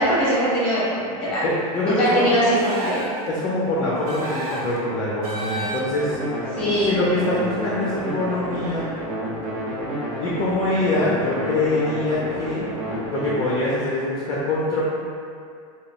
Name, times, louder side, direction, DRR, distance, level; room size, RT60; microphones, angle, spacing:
voice 1, 0.0-1.5 1.9-3.0 6.6-6.9, equal, 5° left, -9 dB, 1.2 m, -21 dB
voice 2, 1.4-2.3 3.3-6.2 6.8-8.9 10.2-12.6 13.1-14.8, left 2 dB, 20° left, -7 dB, 0.5 m, -24 dB
sound 1, 2.6-3.3 4.1-4.8 5.2-6.1, right 1 dB, 85° right, 0.7 m, -31 dB
sound 2, 6.0-13.3, right 1 dB, 45° right, 0.9 m, -30 dB
3.6 x 2.2 x 3.6 m, 2.4 s
supercardioid pair, 155°, 19 cm